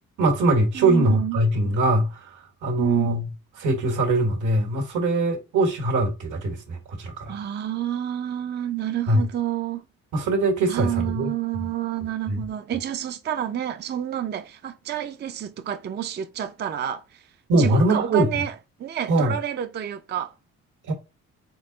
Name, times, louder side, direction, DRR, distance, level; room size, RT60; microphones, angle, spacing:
voice 1, 0.2-3.2 3.6-7.4 9.1-9.2 10.1-11.7 12.3-12.4 17.5-18.3 19.1-19.3 20.9-21.0, right 2 dB, 80° right, 1.4 m, -22 dB
voice 2, 0.7-1.4 2.8-3.2 7.3-9.8 10.7-17.2 17.5-18.5 18.8-20.3, right 11 dB, 35° right, 0.4 m, -29 dB
3.8 x 3.5 x 3.8 m
cardioid pair, 90°, 30 cm